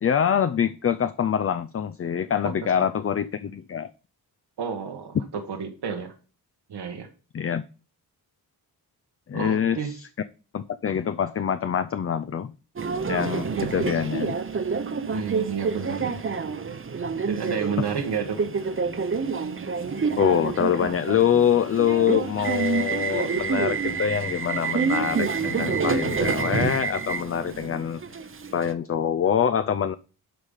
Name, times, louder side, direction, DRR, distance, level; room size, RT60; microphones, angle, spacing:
voice 1, 0.0-3.9 7.3-7.6 9.3-10.1 10.5-12.5 13.1-14.3 17.8-17.9 20.2-28.0 28.5-29.9, left 8 dB, 35° left, 0.4 m, -25 dB
voice 2, 4.6-5.2 5.5-6.1 6.7-7.1 9.3-9.9 13.4-13.7 15.1-16.1 17.3-18.7, right 6 dB, 90° right, 1.6 m, -31 dB
Subway metro underground, 12.8-28.7, right 5 dB, 35° right, 0.8 m, -28 dB
11.0 x 5.1 x 5.6 m
wide cardioid pair, 115°, 39 cm